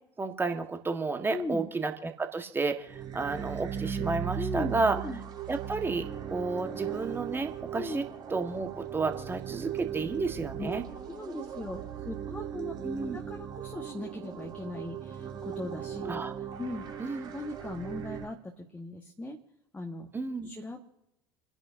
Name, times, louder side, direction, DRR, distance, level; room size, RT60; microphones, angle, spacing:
voice 1, 0.2-5.0 5.5-8.0 8.3-10.8 12.8-13.2 16.1-16.3 17.0-17.3 20.1-20.5, right 3 dB, 15° right, 5 dB, 1.7 m, -32 dB
voice 2, 1.3-1.7 4.4-5.2 7.8-8.0 10.6-10.7 11.1-12.7 13.1-16.2 16.6-16.8 17.3-19.4 19.7-20.1 20.4-20.8, left 2 dB, 10° left, 0 dB, 1.7 m, -38 dB
sound 1, 2.8-18.3, right 9 dB, 35° right, 2.4 m, -38 dB
29.5 x 10.5 x 2.8 m, 0.89 s
figure-of-eight pair, 65°, 13 cm